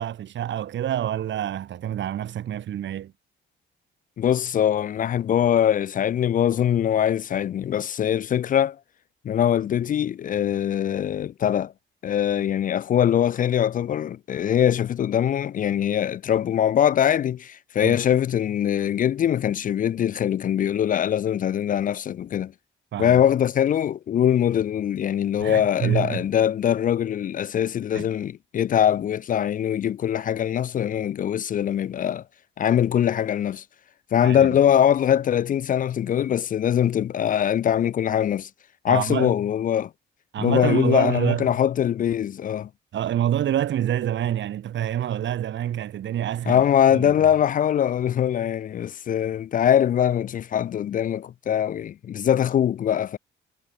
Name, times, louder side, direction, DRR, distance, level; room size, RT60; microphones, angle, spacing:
voice 1, 0.0-3.1 17.8-18.0 22.9-23.2 25.4-26.2 27.9-28.1 34.2-34.6 38.9-39.3 40.3-41.5 42.9-46.6 46.9-47.1, right 11 dB, 70° right, 2.8 m, -27 dB
voice 2, 4.2-8.8 9.2-11.7 12.0-22.5 23.0-32.2 32.6-33.6 34.1-38.5 38.8-39.9 40.4-42.7 46.5-53.2, left 9 dB, 45° left, 0.4 m, -22 dB
cardioid pair, 90°, 20 cm